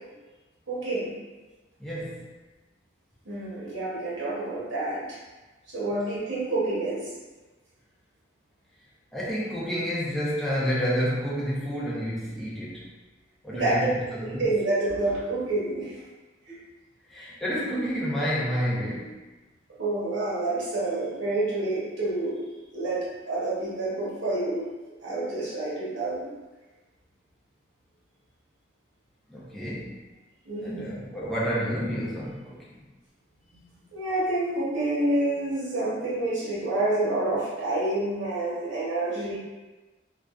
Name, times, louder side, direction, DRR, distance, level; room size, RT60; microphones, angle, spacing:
voice 1, 0.7-1.1 3.2-5.2 5.7-7.1 13.5-13.9 14.3-15.9 16.5-16.6 19.8-22.4 22.7-24.6 25.0-26.3 30.4-30.9 33.9-39.4, right 2 dB, 75° right, -8 dB, 0.9 m, -28 dB
voice 2, 1.8-2.3 9.1-12.9 13.4-14.5 17.1-19.2 29.3-30.0 30.6-32.7, equal, ahead, -8 dB, 0.5 m, -29 dB
2.5 x 2.3 x 2.3 m, 1.2 s
head